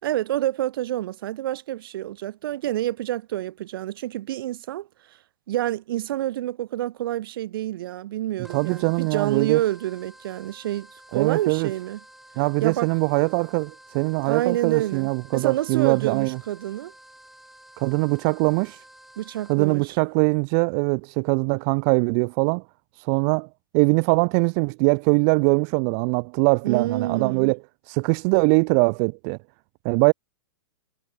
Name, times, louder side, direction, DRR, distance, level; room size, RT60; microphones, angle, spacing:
voice 1, 0.0-4.9 5.5-12.0 12.6-12.9 14.2-16.9 19.2-20.0 26.6-27.5, right 14 dB, 65° right, 3.1 m, -28 dB
sound 1, 8.4-19.9, right 1 dB, ahead, 5.8 m, -51 dB
voice 2, 8.5-9.6 11.1-11.7 12.4-16.4 17.8-18.8 19.5-22.6 23.0-23.5 23.7-27.6 27.9-29.4 29.8-30.1, right 40 dB or more, 35° right, 0.4 m, -22 dB
hypercardioid pair, 145°, 13 cm